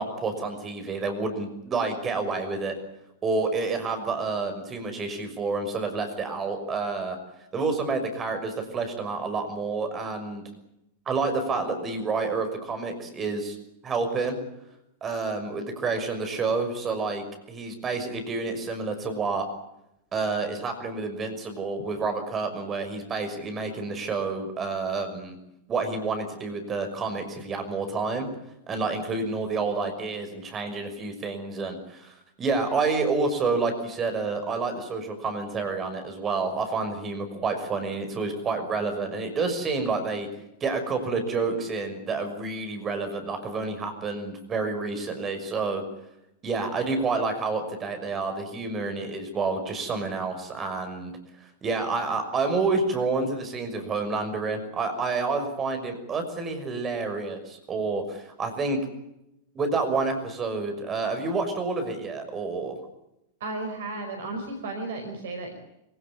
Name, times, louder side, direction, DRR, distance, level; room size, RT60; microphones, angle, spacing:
voice 1, 0.0-2.7 3.2-7.2 7.5-10.4 11.1-13.6 13.8-14.4 15.0-19.5 20.1-25.4 25.7-28.3 28.7-40.3 40.6-45.8 46.4-51.1 51.6-58.8 59.5-62.7, right 4 dB, 25° right, 7 dB, 6.0 m, -29 dB
voice 2, 63.4-65.6, right 2 dB, 60° right, 5 dB, 5.1 m, -34 dB
26.0 x 18.0 x 9.8 m, 0.85 s
figure-of-eight pair, 90°, 0 cm